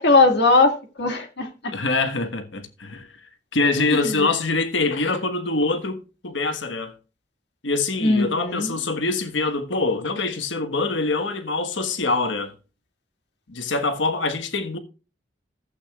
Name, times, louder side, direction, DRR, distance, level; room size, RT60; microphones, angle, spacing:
voice 1, 0.0-1.5 3.9-4.3 8.0-8.8, left 3 dB, 65° left, 1.9 m, -19 dB
voice 2, 1.7-3.1 3.5-6.0 6.2-6.9 7.6-12.5 13.5-14.8, left 3 dB, 90° left, 1.4 m, -24 dB
15.5 x 8.4 x 2.4 m
head